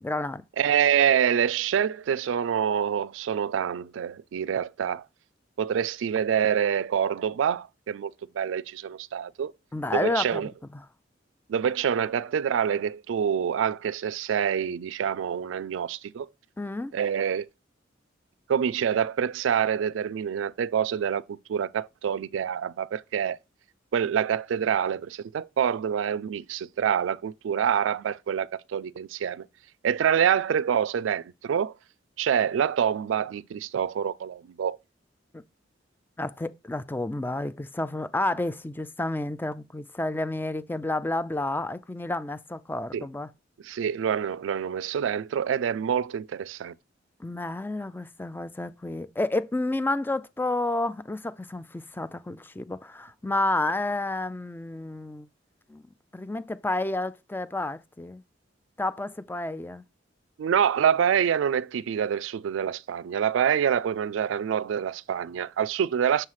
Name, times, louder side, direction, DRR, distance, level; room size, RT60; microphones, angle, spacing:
voice 1, 0.0-0.4 9.7-10.8 16.6-17.0 35.3-35.4 36.2-43.3 47.2-55.3 55.7-55.8 56.1-58.2 58.8-59.8, left 2 dB, 10° left, 0.4 m, -30 dB
voice 2, 0.6-5.0 5.6-9.5 9.9-10.5 11.5-16.3 16.9-17.5 18.5-23.4 23.9-29.5 29.8-31.7 32.2-34.8 42.9-43.0 43.6-46.7 60.4-66.3, right 8 dB, 80° right, 0.3 m, -26 dB
6.6 x 3.1 x 5.6 m
head